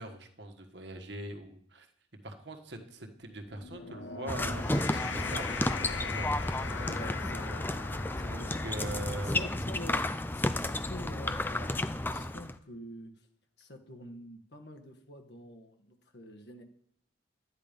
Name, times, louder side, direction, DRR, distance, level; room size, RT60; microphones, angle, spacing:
voice 1, 0.0-1.9 2.2-5.6 6.0-6.4 6.9-7.0 8.3-9.5, right 1 dB, 65° right, 5 dB, 1.5 m, -42 dB
sound 1, 3.4-9.9, left 5 dB, 75° left, 1.1 m, -41 dB
sound 2, 4.3-12.6, left 1 dB, 10° left, 0.4 m, -32 dB
voice 2, 6.9-7.6 8.2-8.6 9.2-10.0 10.3-13.1 13.6-16.6, left 1 dB, 60° left, 4 dB, 1.5 m, -46 dB
12.5 x 9.8 x 5.2 m, 0.67 s
head